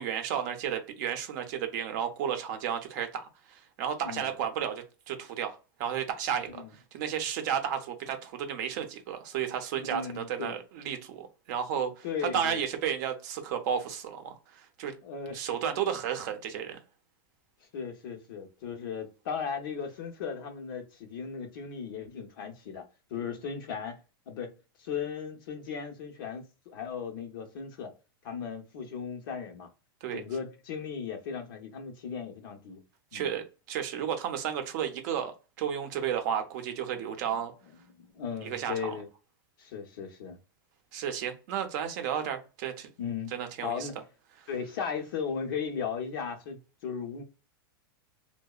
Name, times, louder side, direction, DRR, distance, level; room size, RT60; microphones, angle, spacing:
voice 1, 0.0-6.6 6.9-12.0 12.3-14.9 15.3-16.8 30.0-30.2 33.1-37.5 38.4-39.0 40.9-42.9 43.3-43.9, right 8 dB, 50° right, 0.5 m, -33 dB
voice 2, 9.8-10.6 12.0-12.6 15.0-15.9 17.7-24.0 24.3-24.5 24.8-27.9 28.2-29.7 30.1-32.8 33.1-33.3 37.3-37.4 37.9-39.1 39.6-40.4 43.0-43.3 43.6-44.0 44.5-47.2, left 6 dB, 65° left, 0.7 m, -37 dB
2.7 x 2.0 x 2.3 m
supercardioid pair, 155°, 12 cm